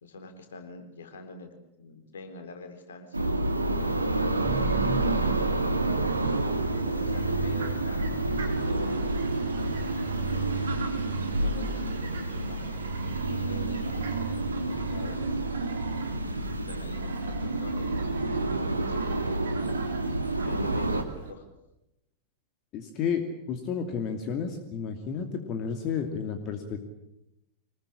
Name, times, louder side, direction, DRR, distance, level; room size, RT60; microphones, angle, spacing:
voice 1, 0.0-3.4 4.2-4.5 4.8-5.6 6.1-8.9 10.3-10.9 11.3-12.8 13.3-14.0 14.7-15.4 16.7-18.0 18.3-19.7 20.4-21.5, left 3 dB, 65° left, 6 dB, 4.1 m, -45 dB
sound 1, 3.1-21.0, right 2 dB, 80° right, 2.0 m, -29 dB
sound 2, 4.4-16.6, right 8 dB, 45° right, 3.9 m, -38 dB
Fowl, 5.8-21.3, right 5 dB, 60° right, 4.3 m, -43 dB
voice 2, 22.7-23.2 23.5-26.8, left 6 dB, 35° left, 5 dB, 2.6 m, -31 dB
25.0 x 21.0 x 8.7 m, 0.88 s
figure-of-eight pair, 90°, 0 cm